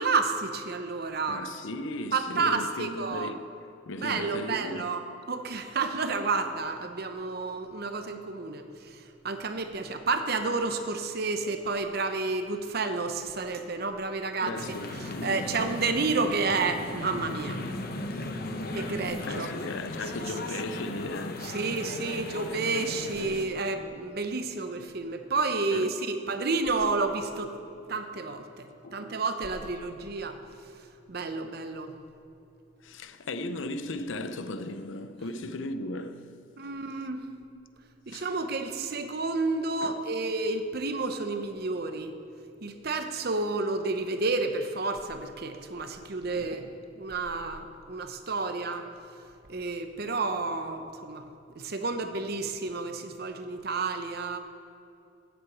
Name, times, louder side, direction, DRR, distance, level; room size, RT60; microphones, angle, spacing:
voice 1, 0.0-1.4 2.1-3.3 4.0-5.0 5.3-14.6 15.0-17.7 18.7-19.5 21.4-27.6 27.9-30.4 31.1-31.9 36.6-37.3 38.1-42.1 42.6-48.9 49.5-51.2 51.5-54.4, right 3 dB, 55° right, 0.8 m, -30 dB
voice 2, 1.3-3.5 3.9-5.0 14.4-15.8 19.2-22.1 25.7-25.9 28.8-29.0 32.8-36.3 36.6-36.7 38.1-38.3 39.8-40.0 46.4-46.5, left 2 dB, 80° left, 0.6 m, -36 dB
sound 1, 14.6-23.5, left 2 dB, 50° left, 0.9 m, -37 dB
8.9 x 7.9 x 7.9 m
head